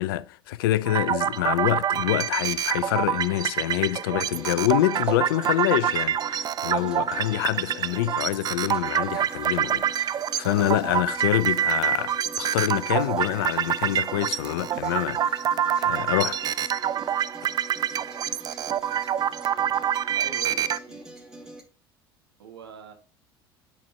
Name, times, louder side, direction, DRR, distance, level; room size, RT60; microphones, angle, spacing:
voice 1, 0.0-15.5 15.8-16.4, left 15 dB, 65° left, 0.4 m, -26 dB
sound 1, 0.9-20.8, right 10 dB, 30° right, 0.4 m, -26 dB
sound 2, 4.2-21.6, right 1 dB, 5° right, 2.2 m, -44 dB
voice 2, 11.2-11.5 20.1-21.0 22.4-22.9, right 7 dB, 75° right, 1.5 m, -43 dB
8.7 x 4.2 x 3.4 m
figure-of-eight pair, 65°, 13 cm